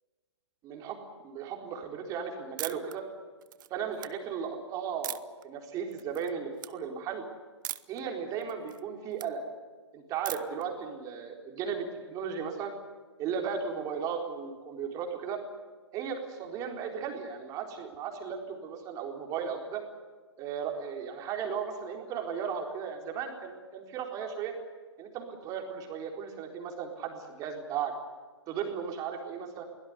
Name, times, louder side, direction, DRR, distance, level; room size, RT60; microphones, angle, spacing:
voice 1, 0.6-1.0 1.2-3.0 3.7-7.2 7.9-9.4 9.9-12.7 13.2-15.4 15.9-19.8 20.4-24.5 25.0-27.9 28.5-29.6, right 7 dB, 25° right, 3 dB, 4.2 m, -36 dB
sound 1, 2.6-3.0 3.4-4.1 5.0-5.4 5.9-6.3 6.6-6.7 7.6-8.0 8.4-9.3 10.3-10.6, right 13 dB, 45° right, 0.9 m, -39 dB
23.0 x 17.5 x 9.8 m, 1.4 s
hypercardioid pair, 140°, 15 cm